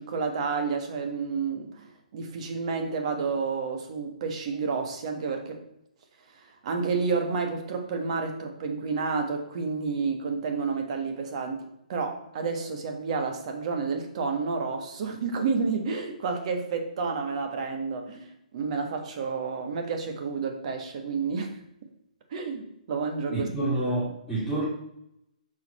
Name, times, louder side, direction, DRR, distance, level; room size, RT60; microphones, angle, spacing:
voice 1, 0.0-5.6 6.2-21.5 22.3-23.5, right 4 dB, 50° right, 4 dB, 1.4 m, -30 dB
voice 2, 23.3-24.6, right 2 dB, ahead, -10 dB, 2.1 m, -28 dB
6.6 x 4.6 x 4.2 m, 0.77 s
hypercardioid pair, 140°, 4 cm